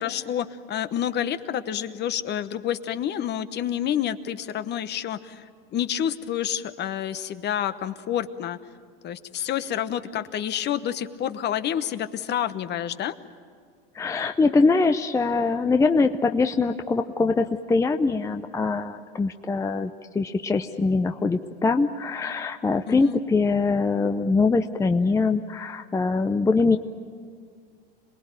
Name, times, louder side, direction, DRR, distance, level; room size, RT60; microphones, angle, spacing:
voice 1, 0.0-8.6 9.0-13.1 22.9-23.2, left 10 dB, 35° left, 12 dB, 1.1 m, -29 dB
voice 2, 13.9-26.8, left 4 dB, 10° left, 7 dB, 0.6 m, -23 dB
27.0 x 19.5 x 9.1 m, 2.1 s
hypercardioid pair, 105°, 29 cm